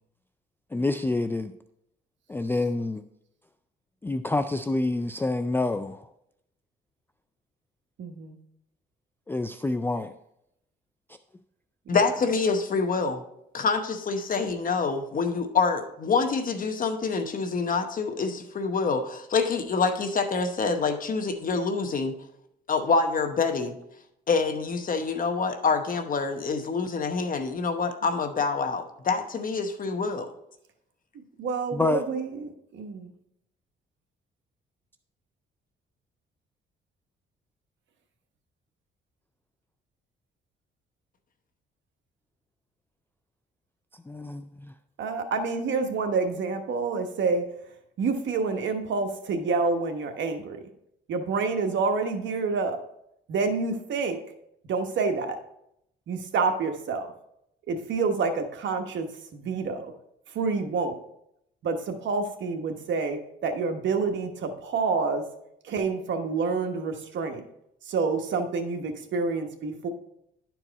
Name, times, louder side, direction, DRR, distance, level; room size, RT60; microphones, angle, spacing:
voice 1, 0.7-1.5 2.3-3.0 4.0-6.1 9.3-10.1 31.7-32.0 44.1-44.7, left 2 dB, 10° left, 0.3 m, -27 dB
voice 2, 8.0-8.4 31.4-33.1 45.0-47.4 48.0-50.6 51.1-52.8 53.3-54.2 54.7-55.4 56.1-57.1 57.7-59.1 59.3-59.9 60.3-60.9 61.6-65.2 65.7-67.4 67.9-69.9, right 4 dB, 70° right, 1.1 m, -28 dB
voice 3, 11.9-13.2 13.5-22.1 22.7-23.8 24.3-30.3, left 4 dB, 45° left, 0.9 m, -26 dB
11.0 x 4.6 x 4.0 m
cardioid pair, 90°, 20 cm